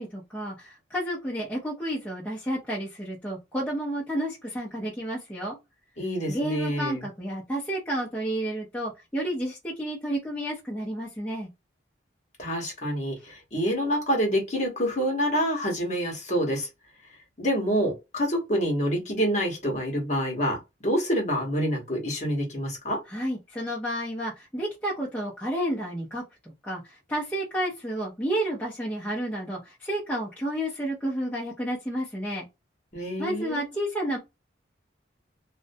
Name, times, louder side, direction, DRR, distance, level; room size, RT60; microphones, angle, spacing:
voice 1, 0.0-5.6 6.3-11.5 23.1-32.5 33.2-34.2, right 1 dB, 10° left, 0.6 m, -31 dB
voice 2, 6.0-7.0 12.4-16.7 17.4-23.0 32.9-33.6, equal, 40° left, 0.9 m, -27 dB
2.5 x 2.1 x 2.5 m
head